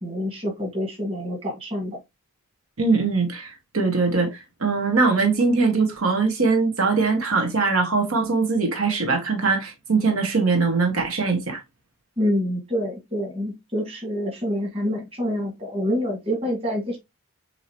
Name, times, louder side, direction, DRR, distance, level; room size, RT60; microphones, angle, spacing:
voice 1, 0.0-2.0 12.2-17.0, equal, 25° right, 1.7 m, -27 dB
voice 2, 2.8-11.6, right 4 dB, 80° right, 1.2 m, -22 dB
6.5 x 2.8 x 2.9 m
head